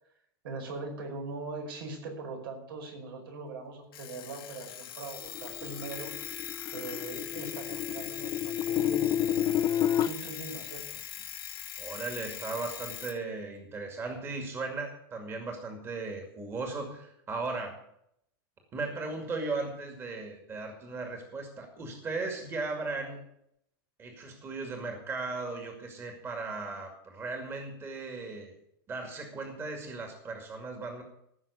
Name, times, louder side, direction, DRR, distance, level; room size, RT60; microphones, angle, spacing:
voice 1, 0.4-6.2 6.7-9.2 9.8-11.0, right 3 dB, 75° right, 3 dB, 5.1 m, -41 dB
Alarm, 3.9-13.2, left 10 dB, 90° left, 1.5 m, -41 dB
sound 1, 5.3-10.1, left 10 dB, 30° left, 0.7 m, -30 dB
voice 2, 11.8-17.8 18.7-23.2 24.0-28.5 28.9-31.0, right 3 dB, 20° right, 3 dB, 2.2 m, -37 dB
15.5 x 6.3 x 8.2 m, 0.74 s
supercardioid pair, 155°, 12 cm